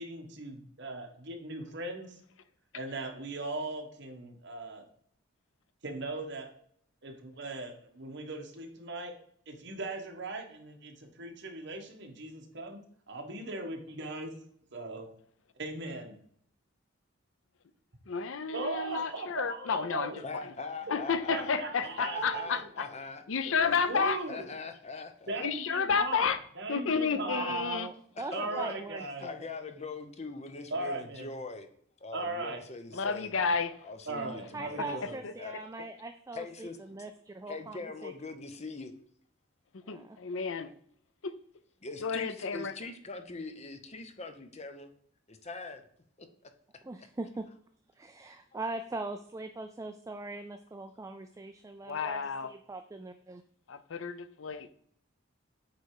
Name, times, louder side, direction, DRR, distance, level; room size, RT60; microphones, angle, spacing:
voice 1, 0.0-2.2 2.7-4.8 5.8-6.5 7.0-9.1 9.5-12.8 13.1-14.3 14.7-15.1 15.6-16.1 18.5-20.2 20.9-21.0 21.3-22.6 23.9-24.4 25.3-27.5 28.3-29.3 30.7-31.3 32.1-32.6 34.1-35.2, right 2 dB, 60° right, 3 dB, 1.4 m, -38 dB
voice 2, 18.1-20.5 20.9-22.9 23.3-24.2 25.4-26.4 26.7-27.9 32.9-33.9 35.2-35.3 39.7-40.7 41.2-41.3 42.0-42.7 51.9-52.5 53.7-54.7, left 5 dB, 75° left, 13 dB, 0.6 m, -31 dB
voice 3, 20.2-21.5 22.0-23.2 23.6-25.5 28.2-31.7 32.0-33.3 33.8-35.0 35.4-35.5 36.3-36.8 37.5-38.9 41.8-44.9 45.3-45.8 46.2-46.5 48.5-48.6, left 3 dB, 35° left, 8 dB, 0.8 m, -42 dB
voice 4, 27.2-29.6 34.5-38.1 39.8-40.2 46.8-47.5 48.0-53.4, right 3 dB, 15° right, 7 dB, 0.3 m, -41 dB
8.5 x 3.4 x 4.8 m, 0.64 s
head